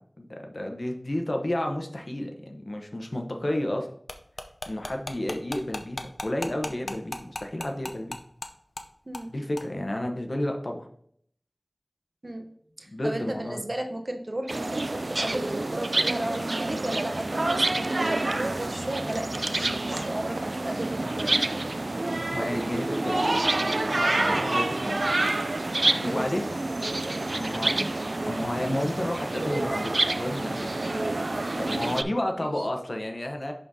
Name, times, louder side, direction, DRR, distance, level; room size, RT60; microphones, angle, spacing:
voice 1, 0.2-3.9 4.7-8.2 9.3-10.9 12.9-13.6 22.3-23.4 23.9-25.2 25.7-26.5 27.3-27.9 28.3-30.8 31.6-33.5, left 1 dB, 60° left, 3 dB, 0.9 m, -31 dB
sound 1, 4.1-8.5 8.8-8.9 9.1-9.3 9.6-9.7, left 2 dB, 90° left, 0.6 m, -35 dB
voice 2, 12.8-21.6 26.0-26.3 32.4-32.7, right 1 dB, 55° right, 5 dB, 0.8 m, -34 dB
sound 2, 14.5-32.0, right 2 dB, 75° right, 0.3 m, -28 dB
11.0 x 3.8 x 2.7 m, 0.64 s
wide cardioid pair, 40°, 0 cm